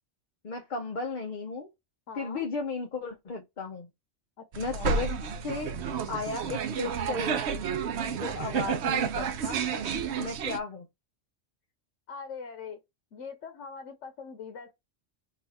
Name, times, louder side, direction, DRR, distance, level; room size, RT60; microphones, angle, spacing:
voice 1, 0.4-1.7 2.1-3.9 4.6-5.1 5.4-5.8 6.1-7.5 8.1-9.6 10.2-10.9, left 3 dB, 45° left, 0.8 m, -34 dB
voice 2, 2.1-2.4 4.4-5.0 12.1-12.8 13.1-14.7, left 5 dB, 90° left, 1.1 m, -42 dB
sound 1, 4.5-10.6, right 6 dB, 70° right, 0.8 m, -31 dB
3.9 x 2.4 x 4.1 m
omnidirectional pair, 1.2 m